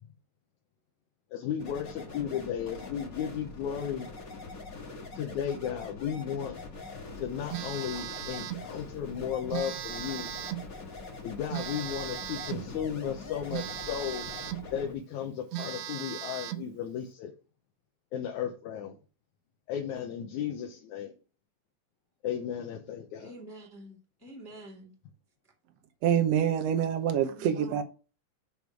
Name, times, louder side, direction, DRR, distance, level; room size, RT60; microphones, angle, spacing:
voice 1, 1.3-4.1 5.1-6.6 7.2-10.3 11.2-14.3 14.7-17.3 18.1-19.0 19.7-21.1 22.2-23.3, left 9 dB, 75° left, 2 dB, 2.3 m, -34 dB
sound 1, 1.6-14.9, left 3 dB, 40° left, 1.5 m, -43 dB
Telephone, 7.5-8.7 9.5-10.7 11.5-12.7 13.5-14.7 15.1-15.2 15.5-16.7, right 13 dB, 85° right, 1.5 m, -37 dB
voice 2, 23.2-24.9 27.3-27.8, right 1 dB, 5° left, -3 dB, 1.8 m, -47 dB
voice 3, 26.0-27.8, right 9 dB, 65° right, 6 dB, 2.0 m, -26 dB
7.0 x 6.1 x 4.7 m, 0.35 s
omnidirectional pair, 3.5 m